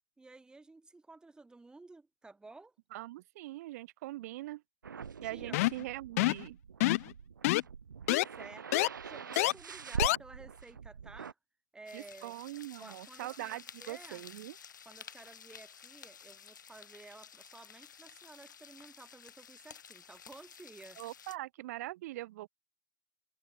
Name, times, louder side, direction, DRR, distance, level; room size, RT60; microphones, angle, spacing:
voice 1, 0.2-2.7 5.2-5.6 8.3-11.4 11.7-12.3 12.8-14.2 14.9-21.0, right 3 dB, 10° right, 5.3 m, -53 dB
voice 2, 2.9-4.6 5.2-6.6 11.9-14.6 21.0-22.5, right 17 dB, 55° right, 5.7 m, -42 dB
sound 1, 4.8-11.3, right 6 dB, 85° right, 0.6 m, -43 dB
sound 2, 5.5-5.8 6.2-6.4 6.8-7.1 7.4-7.6 8.1-8.2 8.7-8.9 9.4-9.5 10.0-10.2, left 19 dB, 50° left, 0.5 m, -26 dB
sound 3, 11.9-21.4, left 7 dB, 75° left, 1.9 m, -53 dB
hypercardioid pair, 110°, 10 cm